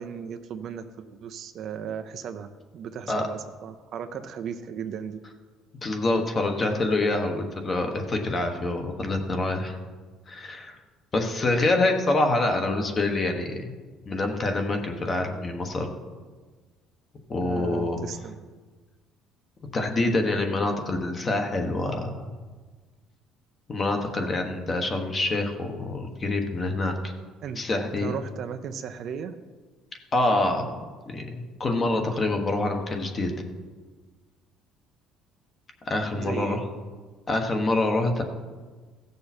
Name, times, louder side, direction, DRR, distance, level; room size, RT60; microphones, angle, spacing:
voice 1, 0.0-5.2 17.4-18.4 27.4-27.6 28.0-29.4 36.1-36.6, right 7 dB, 45° right, 9 dB, 0.6 m, -36 dB
voice 2, 5.8-9.8 10.3-10.8 11.1-13.7 14.1-15.9 17.3-18.0 19.7-22.3 23.7-27.1 27.6-28.2 30.1-30.6 31.1-33.3 35.8-36.6 37.3-38.2, left 2 dB, 25° left, 4 dB, 1.2 m, -26 dB
16.5 x 6.8 x 4.3 m, 1.4 s
cardioid pair, 160°, 0 cm